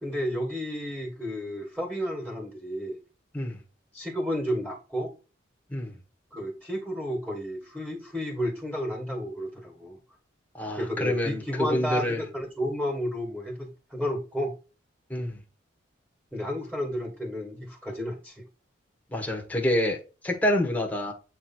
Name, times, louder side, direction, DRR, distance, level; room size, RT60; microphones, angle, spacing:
voice 1, 0.0-3.0 3.9-5.1 6.3-10.0 10.8-14.5 16.3-18.4, equal, 5° right, 1.9 m, -32 dB
voice 2, 10.6-12.2 15.1-15.4 19.1-20.0 20.2-21.1, left 1 dB, 10° left, 1.5 m, -27 dB
8.5 x 3.3 x 4.3 m
head